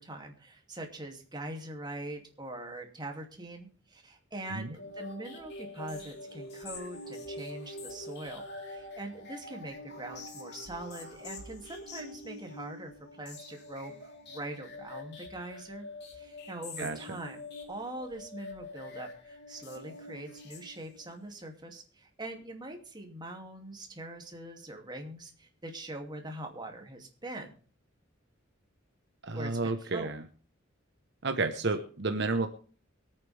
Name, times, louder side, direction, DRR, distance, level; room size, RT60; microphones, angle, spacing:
voice 1, 0.0-12.9 13.2-15.9 16.1-27.6 29.3-30.1, right 1 dB, 20° right, 3 dB, 2.6 m, -43 dB
sound 1, 4.7-21.2, left 2 dB, 55° left, 3.5 m, -45 dB
voice 2, 16.8-17.2 29.2-30.2 31.2-32.5, right 3 dB, 60° right, 7 dB, 1.1 m, -31 dB
24.0 x 8.9 x 3.5 m, 0.40 s
head